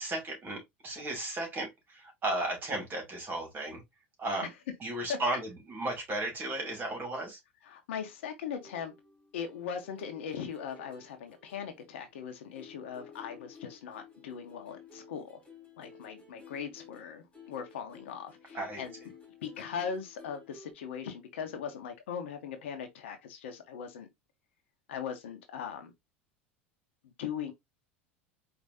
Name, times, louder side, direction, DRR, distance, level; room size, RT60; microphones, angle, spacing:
voice 1, 0.0-3.8 4.2-4.5 4.8-7.4 18.5-18.8, right 2 dB, 30° right, 2.8 m, -35 dB
voice 2, 7.6-8.9 9.3-15.4 15.8-19.0 19.4-24.1 24.9-25.9 27.0-27.5, left 7 dB, 75° left, 1.1 m, -39 dB
sound 1, 8.6-12.3 12.5-20.7, left 5 dB, 15° left, 2.7 m, -54 dB
4.8 x 3.0 x 2.7 m
hypercardioid pair, 85°, 7 cm